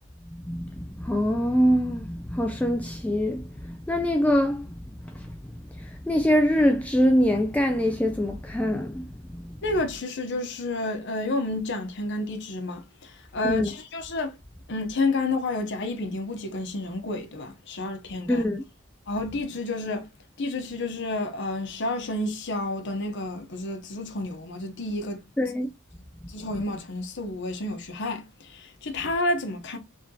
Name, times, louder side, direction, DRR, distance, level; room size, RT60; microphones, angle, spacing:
voice 1, 0.3-4.7 5.0-5.3 5.8-9.8 13.4-13.7 18.3-18.6 25.4-25.7, equal, 5° left, 0.3 m, -24 dB
voice 2, 9.6-14.4 14.7-18.4 19.1-20.1 20.4-25.2 26.3-29.8, left 2 dB, 60° left, 0.8 m, -30 dB
3.3 x 2.7 x 3.7 m
head